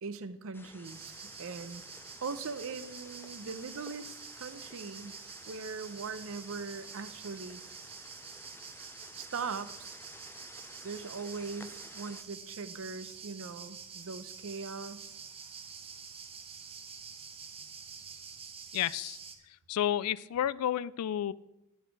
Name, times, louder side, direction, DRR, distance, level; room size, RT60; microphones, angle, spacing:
voice 1, 0.0-1.8 2.2-5.2 5.5-7.6 9.2-10.0 10.8-15.2, right 4 dB, 60° right, 13 dB, 0.6 m, -40 dB
sound 1, 0.5-12.2, left 2 dB, 10° left, 0.5 m, -54 dB
sound 2, 0.8-19.4, right 6 dB, 25° right, 0.9 m, -48 dB
voice 2, 18.7-19.2 19.7-21.3, left 10 dB, 80° left, 18 dB, 0.3 m, -31 dB
9.9 x 8.2 x 4.7 m, 0.90 s
head